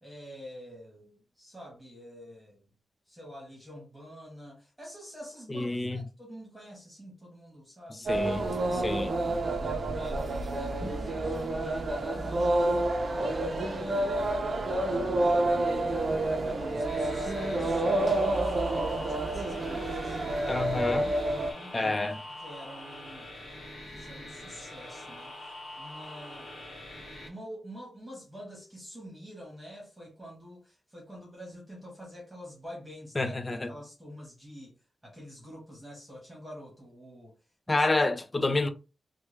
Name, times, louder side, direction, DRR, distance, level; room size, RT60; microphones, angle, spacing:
voice 1, 0.0-2.7 3.1-8.1 8.6-16.1 16.4-20.5 21.3-22.0 22.4-23.3 23.9-26.5 27.2-34.7 35.0-37.3 37.7-37.9, equal, 5° right, 1.3 m, -47 dB
voice 2, 5.5-6.0 7.9-8.4 8.8-9.1 10.8-10.9 20.5-21.1 21.7-22.2 33.2-33.7 37.7-38.7, left 2 dB, 20° left, 0.4 m, -28 dB
sound 1, 8.1-21.5, right 2 dB, 40° right, 0.6 m, -29 dB
sound 2, 16.9-27.3, left 1 dB, 55° left, 1.5 m, -44 dB
3.2 x 2.3 x 3.2 m
wide cardioid pair, 165°, 0 cm